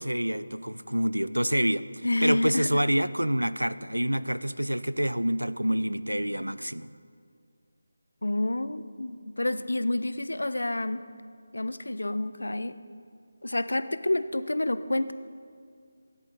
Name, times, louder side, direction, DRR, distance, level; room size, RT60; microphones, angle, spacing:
voice 1, 0.0-6.9, equal, 90° right, 15 dB, 0.3 m, -27 dB
voice 2, 2.0-2.7 8.2-11.0 11.5-12.8 13.4-15.1, left 1 dB, 70° left, 13 dB, 0.4 m, -28 dB
9.8 x 8.4 x 3.8 m, 2.2 s
figure-of-eight pair, 160°, 0 cm